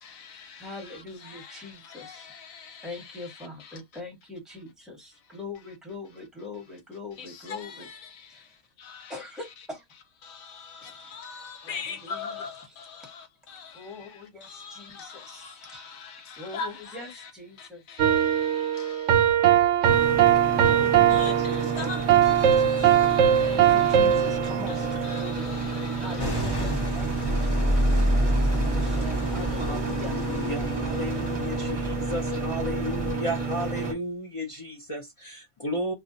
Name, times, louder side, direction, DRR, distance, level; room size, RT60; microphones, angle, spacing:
voice 1, 0.0-3.8 7.2-9.2 10.2-17.3 17.6-19.4 20.4-26.7, left 5 dB, 80° left, 1.2 m, -42 dB
voice 2, 0.6-2.3 2.8-7.9 8.3-8.5 9.1-9.8 10.8-11.0 11.6-12.4 13.7-16.0 16.3-17.8 20.5-21.4 21.7-22.9 23.4-25.7 26.0-30.2, left 2 dB, ahead, 1.1 m, -42 dB
sound 1, 18.0-25.3, right 10 dB, 70° right, 0.9 m, -21 dB
sound 2, 19.9-33.9, right 4 dB, 30° right, 0.9 m, -31 dB
sound 3, 26.2-33.1, equal, 20° left, 0.7 m, -28 dB
voice 3, 29.7-35.9, equal, 45° left, 0.4 m, -34 dB
2.4 x 2.2 x 3.8 m
omnidirectional pair, 1.4 m